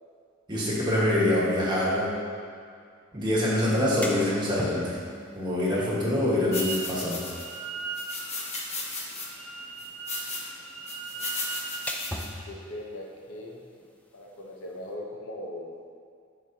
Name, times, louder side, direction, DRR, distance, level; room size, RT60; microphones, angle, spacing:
voice 1, 0.5-2.1 3.1-5.0 5.3-7.2, left 1 dB, 20° right, -6 dB, 1.6 m, -25 dB
sound 1, 3.7-14.9, left 1 dB, 5° left, 0.4 m, -43 dB
sound 2, 6.5-7.6 7.9-9.3 9.8-10.5 10.9-12.3, left 3 dB, 35° left, 1.0 m, -35 dB
Wind instrument woodwind instrument, 6.5-6.9 7.2-12.0, right 5 dB, 70° right, 0.6 m, -39 dB
voice 2, 12.4-13.6 14.1-15.7, left 1 dB, 90° left, -1 dB, 1.0 m, -39 dB
11.0 x 4.4 x 2.9 m, 2.2 s
head